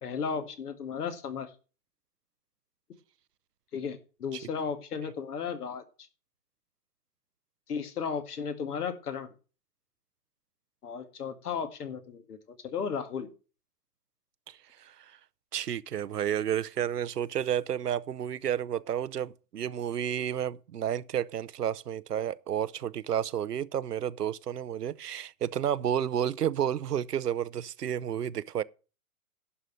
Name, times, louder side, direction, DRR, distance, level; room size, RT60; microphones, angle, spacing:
voice 1, 0.0-1.5 3.7-5.8 7.7-9.3 10.8-13.3, left 6 dB, 75° left, 2.1 m, -35 dB
voice 2, 14.5-15.1 15.5-28.6, right 9 dB, 90° right, 0.7 m, -31 dB
11.5 x 5.1 x 7.6 m
hypercardioid pair, 125°, 46 cm